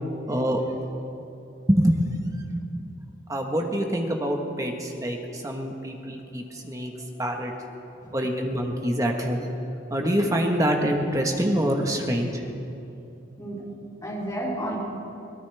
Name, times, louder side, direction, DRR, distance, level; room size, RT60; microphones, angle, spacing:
voice 1, 0.3-0.6 1.7-2.0 3.3-6.9 7.2-7.5 8.1-9.5 9.9-12.4, equal, 15° right, 2 dB, 1.3 m, -25 dB
voice 2, 6.5-7.5 8.0-8.2 13.4-13.6 14.0-14.8, right 1 dB, 15° left, -7 dB, 4.3 m, -34 dB
23.0 x 18.0 x 3.5 m, 2.8 s
head